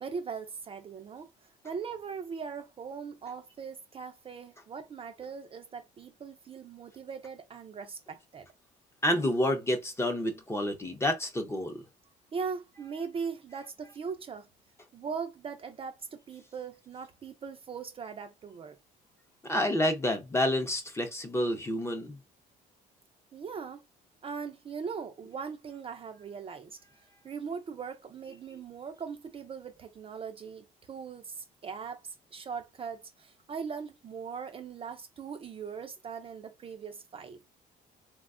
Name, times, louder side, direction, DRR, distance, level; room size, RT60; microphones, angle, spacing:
voice 1, 0.0-8.5 12.3-14.5 14.9-18.8 23.3-23.8 24.2-26.8 27.2-37.4, right 6 dB, 35° right, 0.4 m, -40 dB
voice 2, 9.0-11.8 19.4-22.2, left 1 dB, 15° left, 0.6 m, -29 dB
3.3 x 2.2 x 2.4 m
cardioid pair, 110°, 17 cm